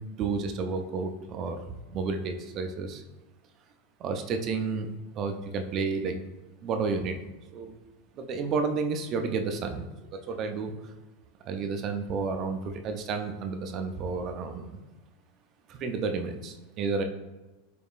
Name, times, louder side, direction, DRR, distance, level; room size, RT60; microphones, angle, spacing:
voice 1, 0.0-1.6 1.9-3.0 4.0-6.2 6.6-7.2 7.5-7.7 8.2-9.9 10.1-10.9 11.4-14.8 15.7-17.0, right 4 dB, 35° right, 6 dB, 0.4 m, -31 dB
4.2 x 3.6 x 2.4 m, 1.1 s
supercardioid pair, 145°, 0 cm